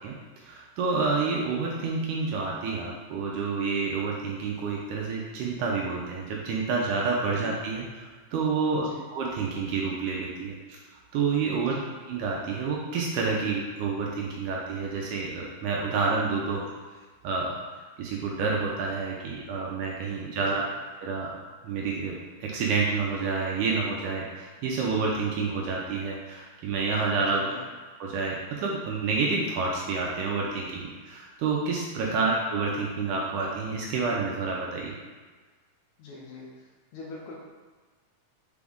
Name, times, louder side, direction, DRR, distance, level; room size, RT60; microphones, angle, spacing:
voice 1, 0.0-10.8 11.1-16.6 17.2-20.7 21.0-21.3 21.6-27.6 28.0-35.0, right 4 dB, 80° right, -2 dB, 1.9 m, -29 dB
voice 2, 8.7-9.1 11.6-11.8 20.1-20.6 27.3-27.7 32.0-32.2 36.0-36.6 36.9-37.4, left 3 dB, 80° left, -3 dB, 1.9 m, -44 dB
6.0 x 2.4 x 3.5 m, 1.4 s
omnidirectional pair, 3.8 m